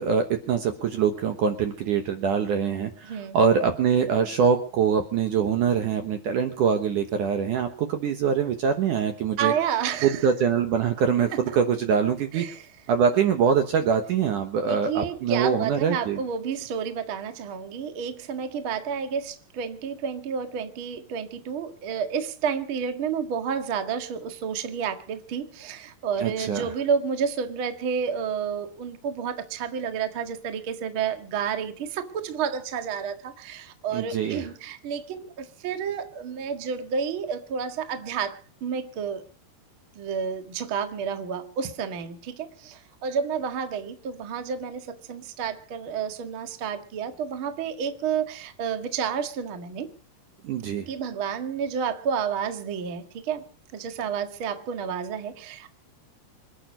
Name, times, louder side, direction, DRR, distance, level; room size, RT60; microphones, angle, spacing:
voice 1, 0.0-9.5 10.0-12.5 12.9-16.2 26.2-26.7 33.9-34.4 50.4-50.9, right 7 dB, 65° right, 2.3 m, -24 dB
voice 2, 3.0-3.4 9.4-10.3 12.3-12.7 14.7-39.2 40.0-49.9 50.9-53.4 53.7-55.7, right 7 dB, 50° right, 1.7 m, -30 dB
27.0 x 9.2 x 5.2 m
omnidirectional pair, 4.8 m